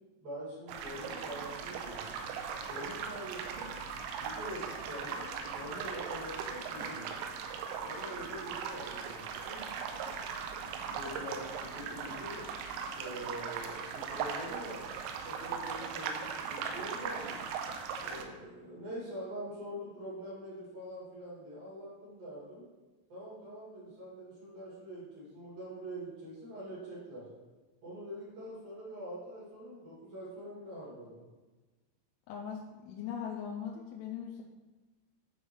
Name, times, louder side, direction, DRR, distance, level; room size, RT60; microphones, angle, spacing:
voice 1, 0.2-2.2 2.7-3.7 4.2-7.2 7.9-9.6 10.8-12.4 12.9-14.8 15.2-17.4 18.0-22.7 23.1-27.2 27.8-31.2, equal, 50° right, -8 dB, 3.6 m, -44 dB
sound 1, 0.7-18.2, right 6 dB, 85° right, 3.2 m, -39 dB
voice 2, 32.3-34.4, left 8 dB, 85° left, -1 dB, 3.2 m, -40 dB
11.0 x 4.0 x 3.1 m, 1.2 s
omnidirectional pair, 5.8 m